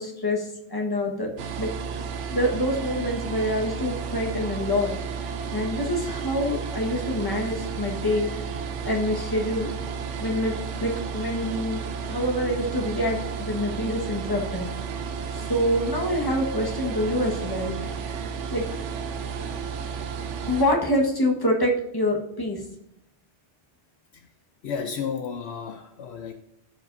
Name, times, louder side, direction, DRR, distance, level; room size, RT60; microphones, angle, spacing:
voice 1, 0.0-1.3 1.6-1.7 2.3-4.9 5.5-8.3 8.8-9.7 10.2-10.5 10.8-14.7 15.3-17.9 18.5-18.7 20.5-22.6, left 1 dB, 20° left, 0 dB, 1.3 m, -26 dB
sound 1, 1.4-20.7, right 6 dB, 80° right, 1.0 m, -32 dB
voice 2, 24.6-26.3, left 6 dB, 70° left, 7 dB, 0.8 m, -32 dB
13.5 x 5.1 x 2.6 m, 0.82 s
omnidirectional pair, 1.2 m